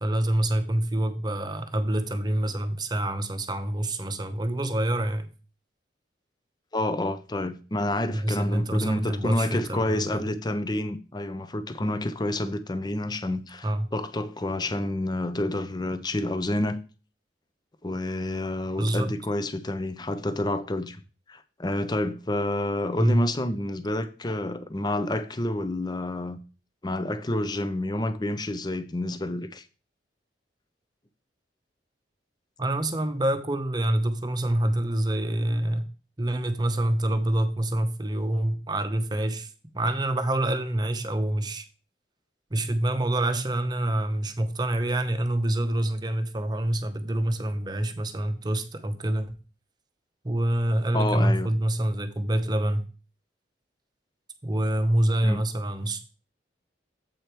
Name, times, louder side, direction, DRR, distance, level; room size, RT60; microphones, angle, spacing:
voice 1, 0.0-5.3 8.1-10.3 13.6-13.9 18.8-19.1 23.0-23.2 32.6-35.9 36.2-41.7 42.5-49.3 50.2-52.8 54.4-56.0, right 1 dB, 25° right, 0.8 m, -26 dB
voice 2, 6.7-16.8 17.8-21.0 21.3-26.4 26.8-29.6 50.9-51.5 55.2-55.4, left 1 dB, 25° left, 0.6 m, -29 dB
7.8 x 5.0 x 4.5 m
head